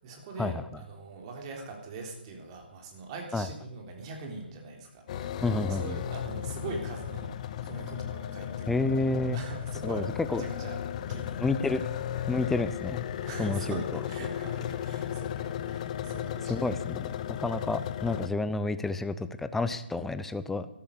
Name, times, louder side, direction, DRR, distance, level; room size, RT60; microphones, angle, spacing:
voice 1, 0.0-10.8 11.1-11.6 13.2-16.7, right 3 dB, 35° right, 2 dB, 3.8 m, -42 dB
sound 1, 5.1-18.3, left 10 dB, 40° left, 0.9 m, -35 dB
voice 2, 5.4-6.0 8.7-9.4 9.8-10.0 10.3-10.4 11.4-11.8 12.3-13.0 13.4-13.8 16.5-17.1 17.4-20.7, left 3 dB, 5° left, 12 dB, 0.7 m, -29 dB
13.0 x 12.5 x 6.7 m, 0.79 s
hypercardioid pair, 150°, 6 cm